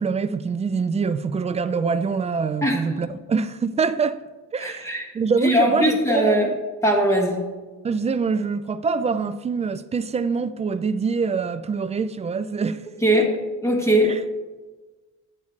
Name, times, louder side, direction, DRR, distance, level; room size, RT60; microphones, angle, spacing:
voice 1, 0.0-4.2 4.5-6.5 7.8-12.8 13.1-13.3 14.0-14.2, right 5 dB, 20° right, 0.3 m, -25 dB
voice 2, 4.6-5.1 5.4-6.5 6.8-7.4 13.0-13.4 13.6-14.2, equal, 10° left, 1.8 m, -20 dB
12.0 x 8.8 x 3.2 m
cardioid pair, 145°, 32 cm